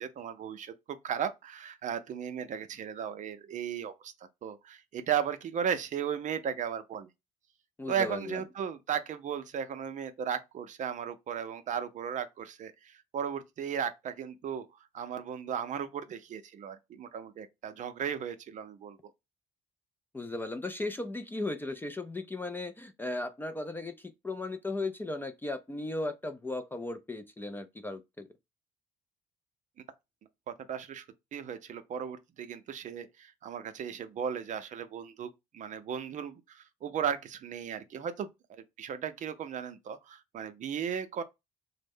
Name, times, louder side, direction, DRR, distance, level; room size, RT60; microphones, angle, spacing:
voice 1, 0.0-4.1 4.4-7.1 7.9-14.7 14.9-19.0 30.5-31.0 31.3-41.2, right 8 dB, 45° right, 0.5 m, -36 dB
voice 2, 7.8-8.4 20.1-28.3, left 2 dB, 10° left, 0.3 m, -36 dB
3.1 x 2.1 x 3.5 m
cardioid pair, 110°, 17 cm